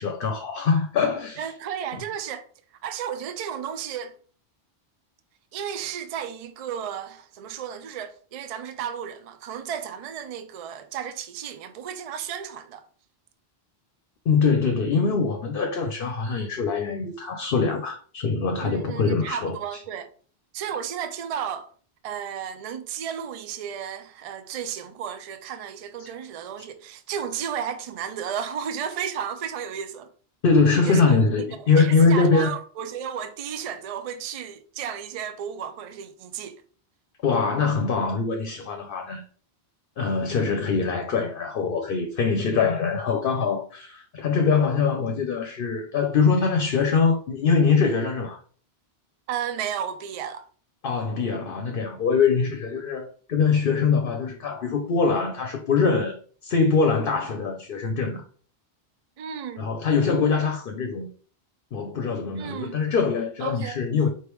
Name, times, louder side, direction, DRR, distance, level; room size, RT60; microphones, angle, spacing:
voice 1, 0.0-1.5 14.3-19.6 26.0-26.1 30.4-32.5 37.2-39.2 40.0-48.4 50.8-56.2 56.4-58.2 59.6-61.1 61.7-64.1, left 5 dB, 60° left, 0.8 m, -23 dB
voice 2, 1.4-2.5 2.8-4.2 5.5-12.8 18.6-20.1 20.5-21.7 22.0-30.1 30.9-36.6 49.3-50.4 59.2-59.7 62.3-62.8 63.4-63.8, right 8 dB, 50° right, 0.4 m, -33 dB
4.4 x 3.4 x 3.0 m
omnidirectional pair, 1.1 m